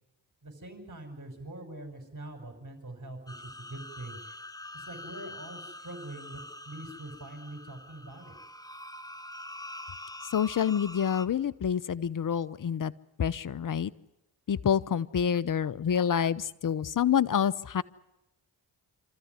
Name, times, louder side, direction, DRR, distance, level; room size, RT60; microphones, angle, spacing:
voice 1, 0.4-4.2 4.7-6.4 6.7-8.4, right 1 dB, 40° right, 5 dB, 6.0 m, -43 dB
sound 1, 3.3-11.3, left 1 dB, 10° left, 1.4 m, -45 dB
voice 2, 10.3-12.9 13.2-13.9 14.5-17.8, left 8 dB, 40° left, 20 dB, 0.9 m, -27 dB
28.0 x 13.5 x 9.7 m, 0.92 s
hypercardioid pair, 40°, 49 cm